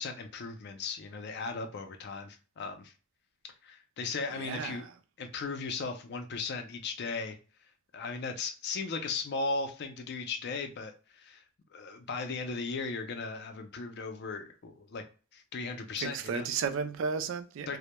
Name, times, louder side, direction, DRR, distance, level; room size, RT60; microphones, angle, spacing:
voice 1, 0.0-2.9 3.6-4.8 5.2-7.4 7.9-11.4 11.7-15.0 15.3-16.4 17.7-17.8, left 4 dB, 55° left, 0.4 m, -37 dB
voice 2, 4.3-4.9 16.0-17.8, right 6 dB, 65° right, 0.3 m, -34 dB
2.1 x 2.1 x 2.9 m
head